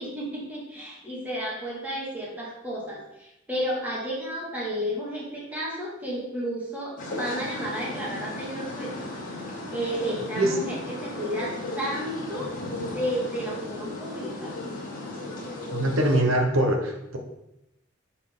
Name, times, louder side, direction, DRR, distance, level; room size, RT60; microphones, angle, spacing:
voice 1, 0.0-8.9 9.7-12.5 12.8-14.6, equal, 10° right, -5 dB, 2.1 m, -32 dB
sound 1, 7.0-16.2, left 2 dB, 45° left, 2.1 m, -35 dB
voice 2, 15.7-17.2, right 1 dB, 85° right, 3 dB, 1.1 m, -23 dB
9.6 x 4.4 x 3.8 m, 0.89 s
head